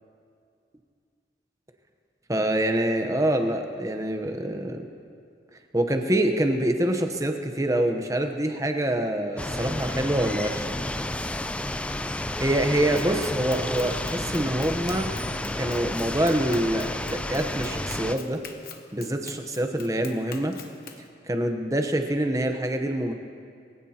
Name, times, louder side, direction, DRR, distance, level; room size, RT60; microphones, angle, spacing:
voice 1, 2.3-4.8 5.7-10.8 12.4-15.1 15.6-18.4 18.9-20.5 21.3-23.1, right 1 dB, 20° right, 5 dB, 0.9 m, -25 dB
sound 1, 9.4-18.2, left 1 dB, 5° left, 0.3 m, -31 dB
Run, 13.0-21.1, left 5 dB, 55° left, 1.0 m, -45 dB
22.5 x 16.0 x 2.9 m, 2.3 s
head